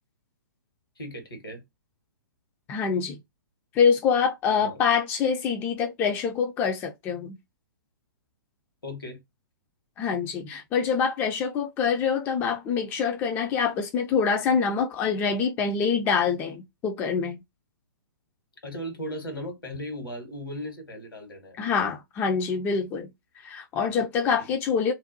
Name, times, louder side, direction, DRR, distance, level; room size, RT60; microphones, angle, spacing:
voice 1, 1.0-1.6 4.6-4.7 8.8-9.2 18.6-21.6, equal, 70° left, 1.3 m, -36 dB
voice 2, 2.7-3.2 3.7-7.3 10.0-17.4 21.6-23.1 23.4-24.9, left 6 dB, 15° left, 0.3 m, -25 dB
2.6 x 2.2 x 2.6 m
figure-of-eight pair, 120°, 12 cm